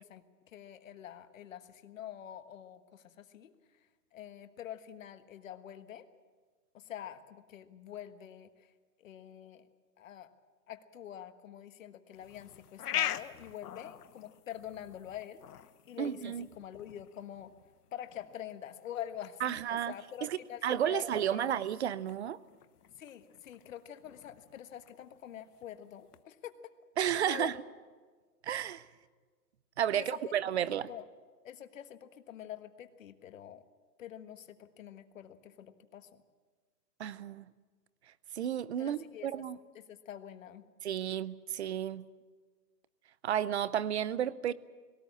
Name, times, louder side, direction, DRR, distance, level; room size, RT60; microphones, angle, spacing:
voice 1, 0.0-3.5 4.1-6.1 6.7-8.7 9.0-9.7 10.0-10.3 10.7-15.4 15.9-17.5 17.9-21.5 23.0-26.5 27.1-27.5 29.9-30.3 30.7-31.0 31.4-33.6 34.0-36.2 38.8-39.3 39.7-40.6, left 10 dB, 55° left, 9 dB, 1.4 m, -46 dB
sound 1, 12.1-26.2, left 11 dB, 70° left, 1.0 m, -44 dB
voice 2, 16.0-16.5 19.4-19.9 20.2-22.4 27.0-27.5 28.4-28.8 29.8-30.9 37.0-37.5 38.3-39.6 40.8-42.0 43.2-44.5, right 10 dB, 45° right, 18 dB, 0.6 m, -32 dB
19.0 x 18.0 x 8.5 m, 1.5 s
hypercardioid pair, 170°, 48 cm